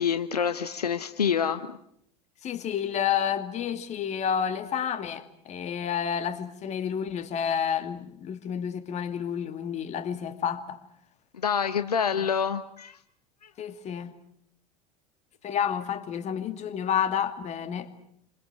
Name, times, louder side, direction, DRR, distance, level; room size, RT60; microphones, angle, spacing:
voice 1, 0.0-1.8 11.3-13.0, left 7 dB, 75° left, 1.2 m, -27 dB
voice 2, 2.4-10.8 13.6-14.1 15.4-17.9, left 8 dB, 35° left, 2.5 m, -30 dB
29.0 x 26.5 x 6.2 m
figure-of-eight pair, 75°, 20 cm